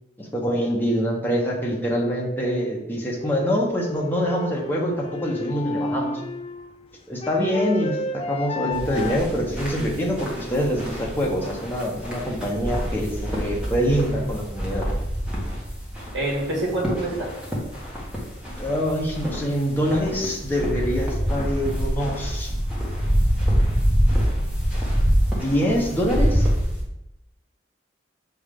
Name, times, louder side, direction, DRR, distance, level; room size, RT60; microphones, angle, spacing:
voice 1, 0.2-6.2 7.1-14.9 18.6-22.6 25.4-26.5, equal, 10° left, -3 dB, 1.1 m, -25 dB
sound 1, 3.2-9.2, left 2 dB, 30° left, 0.3 m, -32 dB
sound 2, 8.7-26.8, equal, 5° right, 1.4 m, -26 dB
voice 2, 16.1-17.3, right 2 dB, 65° right, -3 dB, 2.0 m, -26 dB
6.4 x 3.5 x 5.2 m, 0.88 s
head